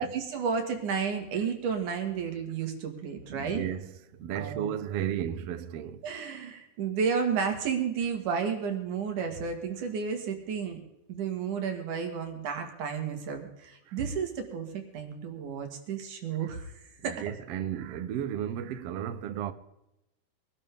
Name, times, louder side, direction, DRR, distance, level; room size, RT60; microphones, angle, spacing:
voice 1, 0.0-3.6 4.3-4.7 6.0-10.8 11.1-16.7 17.0-17.2, right 6 dB, 85° right, 3.5 m, -32 dB
voice 2, 3.3-6.0 13.9-14.0 17.0-19.5, right 10 dB, 65° right, 1.6 m, -34 dB
23.0 x 12.0 x 3.6 m
omnidirectional pair, 3.5 m